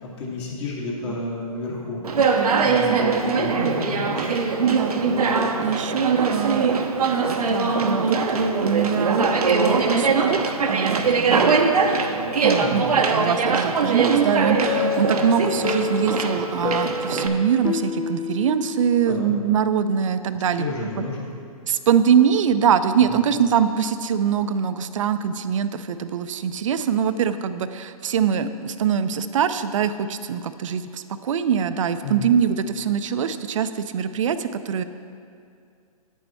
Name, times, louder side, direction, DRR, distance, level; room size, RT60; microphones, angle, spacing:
voice 1, 0.0-2.4 2.6-4.4 12.6-12.9 19.1-19.3 20.4-21.3 23.0-23.2 32.0-32.4, left 2 dB, 50° left, -3 dB, 2.2 m, -32 dB
Conversation, 2.0-17.3, right 4 dB, 80° right, 0.8 m, -22 dB
voice 2, 2.4-3.2 4.7-5.0 5.3-6.7 7.3-8.2 8.6-11.6 12.4-20.7 21.0-21.1 21.7-34.8, right 8 dB, 60° right, 12 dB, 0.5 m, -23 dB
sound 1, 14.7-19.3, left 6 dB, 65° left, 0.9 m, -29 dB
9.2 x 7.1 x 4.4 m, 2.4 s
hypercardioid pair, 130°, 19 cm